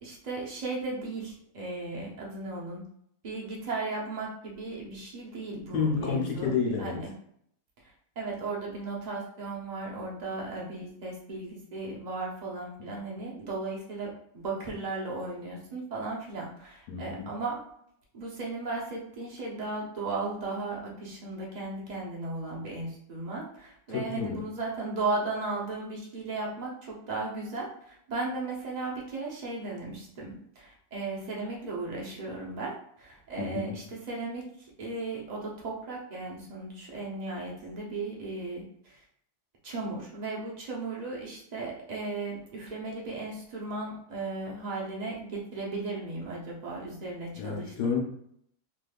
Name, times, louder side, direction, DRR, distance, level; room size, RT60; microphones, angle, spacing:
voice 1, 0.0-2.8 3.2-6.5 6.8-7.1 8.2-17.6 18.1-34.4 34.8-39.0 39.6-47.7, right 3 dB, 80° right, -3 dB, 0.3 m, -36 dB
voice 2, 5.7-7.1 16.9-17.3 23.9-24.5 33.4-33.8 47.4-48.0, left 6 dB, 85° left, 0 dB, 1.2 m, -30 dB
3.3 x 3.0 x 2.3 m, 0.69 s
omnidirectional pair, 1.7 m